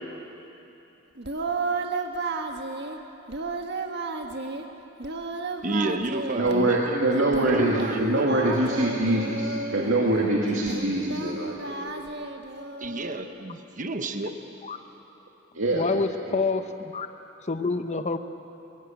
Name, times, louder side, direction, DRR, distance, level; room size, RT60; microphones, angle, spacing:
Singing, 1.2-3.0 3.3-4.7 5.0-6.7 7.2-10.0 10.5-13.2, right 3 dB, 60° right, 1.5 m, -33 dB
voice 1, 5.6-7.1 7.4-8.6 12.8-14.4, right 2 dB, 40° right, 7 dB, 1.1 m, -31 dB
voice 2, 6.4-11.9 15.5-16.0, right 1 dB, 85° right, -2 dB, 2.2 m, -24 dB
voice 3, 15.7-17.1 17.5-18.2, left 4 dB, 35° left, 9 dB, 0.9 m, -27 dB
22.0 x 17.5 x 9.0 m, 2.9 s
head